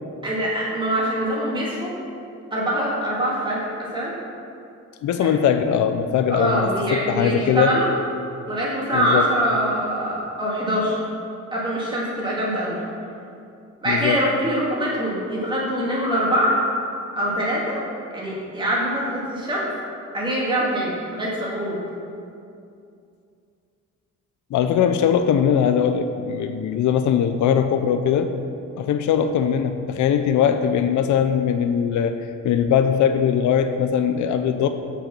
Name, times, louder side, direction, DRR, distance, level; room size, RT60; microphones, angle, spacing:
voice 1, 0.2-2.0 2.5-4.1 5.2-5.3 6.3-7.9 8.5-11.0 11.5-12.8 13.8-16.6 17.1-17.8 18.1-19.7 20.1-21.8, equal, 15° right, -5 dB, 2.0 m, -24 dB
voice 2, 5.0-7.7 8.9-9.2 13.9-14.2 24.5-28.3 28.8-32.1 32.4-34.7, left 8 dB, 75° left, 8 dB, 0.6 m, -20 dB
8.3 x 6.5 x 6.0 m, 2.5 s
wide cardioid pair, 175°, 30 cm